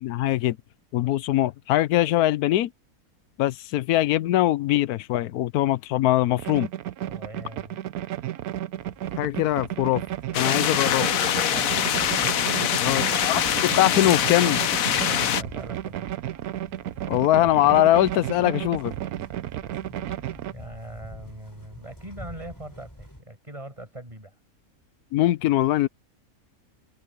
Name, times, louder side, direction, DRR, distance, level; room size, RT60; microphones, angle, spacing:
voice 1, 0.0-0.6 0.9-2.7 3.4-6.7 9.2-10.0 10.3-11.1 12.8-14.6 17.1-18.9 25.1-25.9, left 14 dB, 85° left, 1.1 m, -22 dB
sound 1, 6.4-20.5, right 12 dB, 85° right, 1.2 m, -33 dB
voice 2, 7.1-7.8 11.3-12.0 12.5-13.0 14.8-16.1 20.4-24.3, right 1 dB, 20° right, 7.2 m, -41 dB
sound 2, 8.8-23.2, equal, 15° left, 6.0 m, -49 dB
sound 3, 10.3-15.4, left 9 dB, 70° left, 1.3 m, -24 dB
omnidirectional pair, 1.5 m